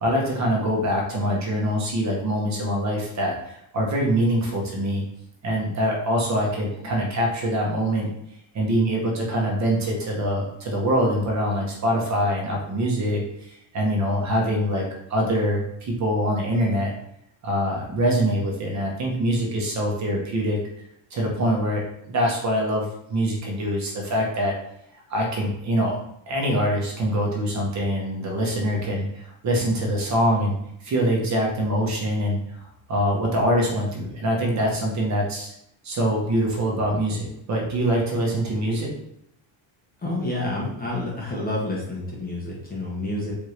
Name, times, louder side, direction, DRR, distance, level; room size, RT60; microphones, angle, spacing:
voice 1, 0.0-5.0 5.4-8.1 8.5-16.9 17.4-20.6 21.1-24.5 25.1-26.0 26.3-30.6 30.8-32.6 32.9-35.5 35.8-38.9, equal, 35° right, -1 dB, 0.8 m, -24 dB
voice 2, 40.0-43.3, left 2 dB, 20° left, -4 dB, 0.6 m, -29 dB
4.8 x 2.6 x 3.1 m, 0.75 s
cardioid pair, 165°, 50 cm